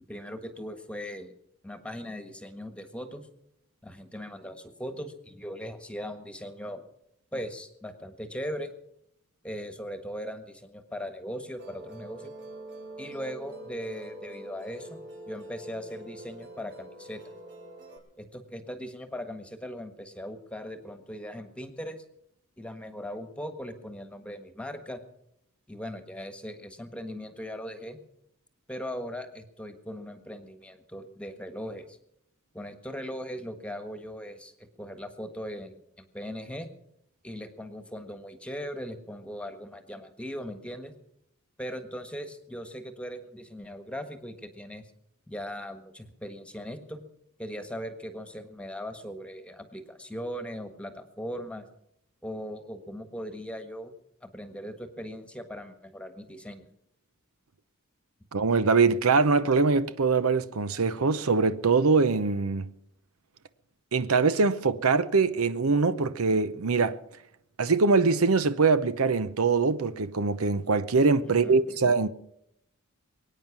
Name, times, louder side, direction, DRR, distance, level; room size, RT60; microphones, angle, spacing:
voice 1, 0.1-1.3 1.6-3.3 3.8-6.8 7.3-8.7 9.4-12.3 13.0-17.2 18.2-22.0 22.6-25.0 25.7-28.0 28.7-32.0 32.5-34.5 34.8-36.7 37.2-40.9 41.6-44.8 45.3-47.0 47.4-51.6 52.2-53.9 54.2-56.7 71.4-71.8, equal, 5° left, 1.5 m, -39 dB
Musical instrument, 11.6-18.0, right 2 dB, 60° right, 4.6 m, -44 dB
voice 2, 58.3-62.7 63.9-67.0 67.6-72.1, right 4 dB, 85° right, 0.8 m, -23 dB
23.0 x 9.3 x 6.0 m
head